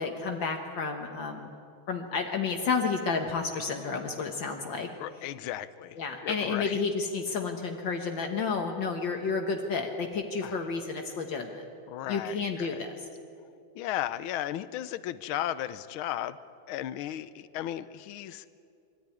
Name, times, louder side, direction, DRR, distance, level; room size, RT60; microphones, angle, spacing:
voice 1, 0.0-1.5 1.9-4.9 6.0-11.6 12.1-13.0, left 4 dB, 65° left, 3 dB, 2.0 m, -31 dB
voice 2, 5.0-6.8 10.4-10.7 11.9-12.8 13.7-16.4 16.7-18.4, left 12 dB, 80° left, 14 dB, 1.5 m, -35 dB
23.5 x 14.0 x 9.8 m, 2.5 s
omnidirectional pair, 2.3 m